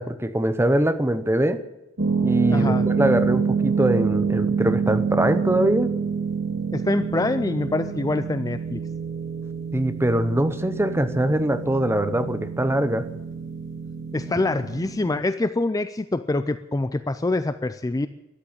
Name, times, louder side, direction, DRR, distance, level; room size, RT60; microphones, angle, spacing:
voice 1, 0.0-1.6 2.2-5.9 9.7-13.1, right 1 dB, 10° right, 11 dB, 0.8 m, -22 dB
sound 1, 2.0-15.2, right 5 dB, 60° right, 2.2 m, -27 dB
voice 2, 2.5-2.9 6.7-8.8 14.1-18.1, left 2 dB, 15° left, 11 dB, 0.4 m, -25 dB
13.5 x 10.5 x 8.7 m, 0.95 s
head